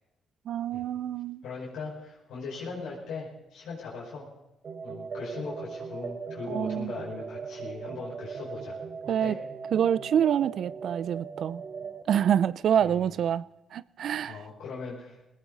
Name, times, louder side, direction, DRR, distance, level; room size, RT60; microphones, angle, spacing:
voice 1, 0.5-1.4 6.5-6.9 9.1-9.4 9.7-11.6 12.1-13.4 13.7-14.4, right 9 dB, 65° right, 0.6 m, -26 dB
voice 2, 1.4-4.3 4.8-8.8 9.0-9.4 12.8-13.1 14.3-15.2, left 4 dB, 85° left, 5.5 m, -39 dB
sound 1, 4.6-12.0, right 5 dB, 50° right, 1.8 m, -39 dB
18.5 x 18.5 x 4.1 m
cardioid pair, 90°, 0 cm